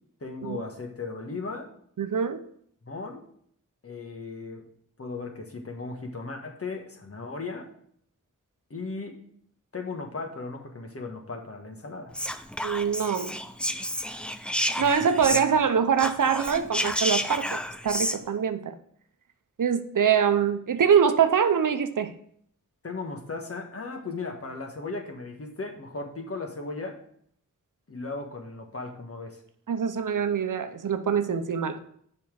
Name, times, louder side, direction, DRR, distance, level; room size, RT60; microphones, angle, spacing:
voice 1, 0.2-1.7 2.8-3.2 3.8-4.6 5.0-7.7 8.7-9.2 9.7-12.1 14.8-15.5 22.8-27.0 27.9-29.4, left 3 dB, 50° left, 3 dB, 1.4 m, -36 dB
voice 2, 2.0-2.4 12.6-13.4 14.8-18.8 19.6-22.1 29.7-31.8, right 7 dB, 80° right, 9 dB, 0.7 m, -24 dB
Whispering, 12.1-15.7 15.9-18.2, equal, 5° left, 0.5 m, -30 dB
7.0 x 5.5 x 4.7 m, 0.65 s
wide cardioid pair, 65°, 31 cm